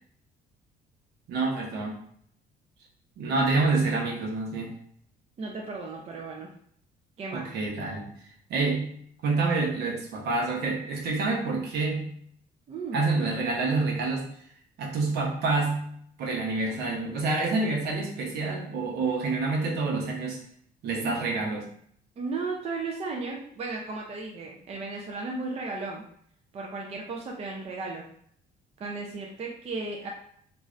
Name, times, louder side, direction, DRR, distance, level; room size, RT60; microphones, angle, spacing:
voice 1, 1.3-2.0 3.2-4.7 7.3-8.1 8.5-8.9 9.2-12.1 12.9-14.3 14.8-20.4 20.8-21.7, right 3 dB, 70° right, -2 dB, 0.9 m, -27 dB
voice 2, 5.4-6.5 7.2-7.5 12.7-13.1 22.2-26.1 26.5-28.1 28.8-30.1, right 3 dB, 40° right, -1 dB, 0.5 m, -35 dB
2.4 x 2.4 x 3.1 m, 0.64 s
cardioid pair, 110°, 17 cm